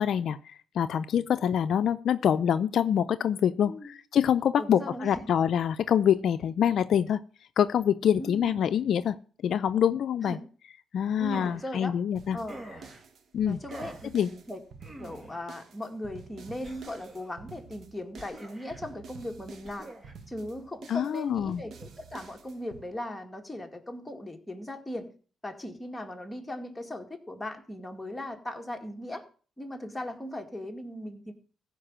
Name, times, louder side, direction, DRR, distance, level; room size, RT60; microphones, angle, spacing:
voice 1, 0.0-7.2 7.6-9.2 9.4-10.4 10.9-12.4 13.3-13.6 14.1-14.3 20.9-21.6, left 9 dB, 65° left, 11 dB, 0.5 m, -25 dB
voice 2, 4.6-5.3 8.2-8.6 10.2-10.4 11.2-12.0 12.3-12.6 13.4-14.6 15.0-19.9 20.3-25.1 25.4-29.2 29.6-31.3, left 1 dB, 10° left, 2 dB, 2.1 m, -38 dB
sound 1, 11.3-11.7 12.5-13.0 13.7-14.1 14.8-15.4 16.6-17.3 18.2-18.8 19.6-20.1, right 1 dB, 30° right, 2.6 m, -45 dB
sound 2, 12.2-22.8, right 5 dB, 60° right, 1.4 m, -49 dB
15.0 x 5.3 x 7.5 m, 0.40 s
cardioid pair, 90°, 0 cm